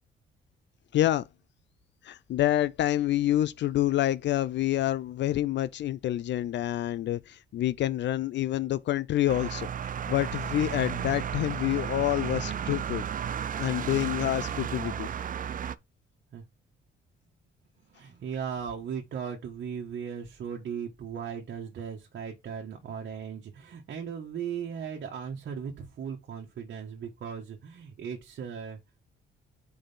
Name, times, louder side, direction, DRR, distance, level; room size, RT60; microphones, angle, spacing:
voice 1, 0.9-1.3 2.0-13.1 13.6-15.1, left 13 dB, 65° left, 0.4 m, -27 dB
sound 1, 9.3-15.7, right 8 dB, 45° right, 0.6 m, -33 dB
voice 2, 14.6-15.1 16.3-16.4 17.8-28.8, right 7 dB, 60° right, 1.6 m, -37 dB
5.1 x 4.8 x 5.6 m
cardioid pair, 90°, 20 cm